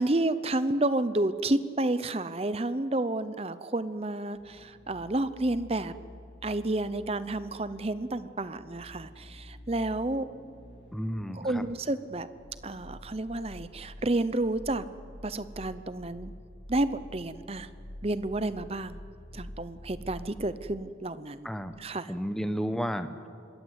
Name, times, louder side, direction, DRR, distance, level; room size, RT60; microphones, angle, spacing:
voice 1, 0.0-5.9 6.4-10.3 11.3-12.3 12.6-14.8 15.2-16.3 16.7-17.7 18.0-19.0 19.3-21.5 21.8-22.1, right 2 dB, 30° right, 13 dB, 0.8 m, -30 dB
sound 1, 4.3-21.9 22.1-22.2, equal, 80° left, 2.8 m, -48 dB
voice 2, 10.9-11.6 21.4-21.8 22.1-23.3, equal, ahead, 9 dB, 1.0 m, -32 dB
26.0 x 21.5 x 8.3 m, 2.3 s
head